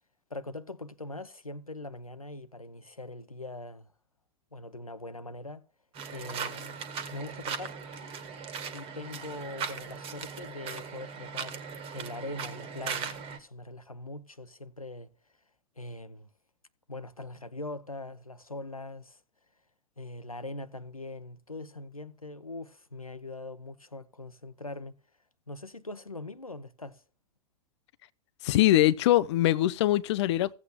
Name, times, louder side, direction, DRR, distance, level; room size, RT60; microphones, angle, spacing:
voice 1, 0.3-3.9 4.5-5.6 6.1-6.8 7.1-7.8 8.7-11.6 11.9-15.1 15.8-16.3 16.9-19.2 20.0-24.9 25.5-27.0, left 2 dB, 90° left, 0.7 m, -42 dB
sound 1, 5.9-13.4, right 6 dB, 30° right, 1.6 m, -38 dB
voice 2, 28.4-30.5, left 14 dB, 50° left, 0.4 m, -23 dB
16.5 x 8.3 x 2.3 m
figure-of-eight pair, 90°, 18 cm